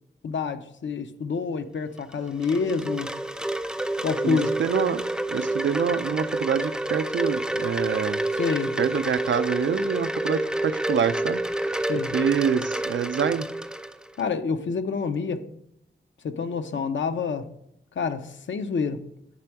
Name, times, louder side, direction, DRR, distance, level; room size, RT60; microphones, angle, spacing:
voice 1, 0.2-3.2 4.0-4.6 8.3-8.8 11.9-12.1 14.2-15.5 16.2-17.5 18.0-19.1, left 5 dB, 75° left, 9 dB, 0.6 m, -28 dB
Wind chime, 2.0-14.2, right 1 dB, 5° right, 0.4 m, -29 dB
voice 2, 4.2-5.0 5.3-8.3 8.8-11.7 12.1-13.5, right 7 dB, 70° right, 13 dB, 0.4 m, -26 dB
7.5 x 3.4 x 4.5 m, 0.76 s
wide cardioid pair, 70°, 20 cm